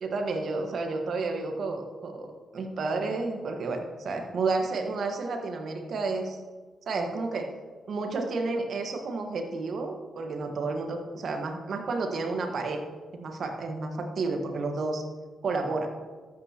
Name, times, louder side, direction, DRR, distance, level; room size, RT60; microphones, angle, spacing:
voice 1, 0.0-6.4 6.9-7.5 7.9-12.8 13.1-15.0 15.4-15.9, right 3 dB, 65° right, 3 dB, 1.5 m, -31 dB
12.5 x 8.9 x 3.0 m, 1.4 s
supercardioid pair, 50°, 0 cm